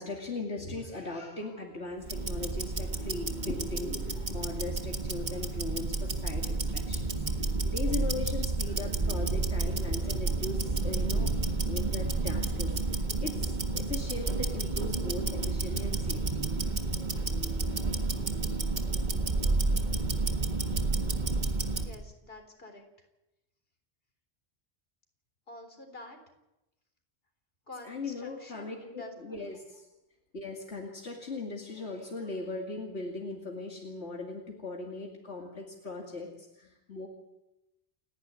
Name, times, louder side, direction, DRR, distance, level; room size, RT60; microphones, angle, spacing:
voice 1, 0.0-11.3 11.7-16.6 27.8-29.9 30.3-37.1, left 3 dB, 85° left, 0 dB, 2.7 m, -39 dB
Tick-tock, 2.0-22.0, right 3 dB, 45° right, 1.7 m, -30 dB
voice 2, 21.5-22.9 25.5-26.2 27.7-29.1, left 2 dB, 60° left, 5 dB, 4.0 m, -48 dB
29.0 x 11.0 x 9.7 m, 0.95 s
omnidirectional pair, 1.1 m